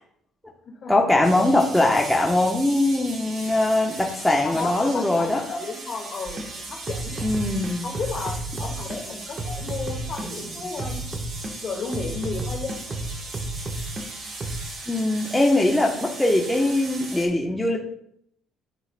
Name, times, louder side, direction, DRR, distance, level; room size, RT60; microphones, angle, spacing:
voice 1, 0.9-5.4 7.2-7.9 14.9-17.8, left 2 dB, 5° left, -1 dB, 0.9 m, -21 dB
sound 1, 1.2-17.3, right 2 dB, 55° right, 2.2 m, -38 dB
voice 2, 4.4-7.3 7.8-11.1 11.6-13.0, left 4 dB, 45° left, 2 dB, 1.7 m, -33 dB
sound 2, 6.3-6.5 6.9-9.0 9.4-11.5 11.9-14.1 14.4-14.6, right 2 dB, 35° right, 1.1 m, -32 dB
11.5 x 4.7 x 2.2 m, 0.70 s
cardioid pair, 90°, 0 cm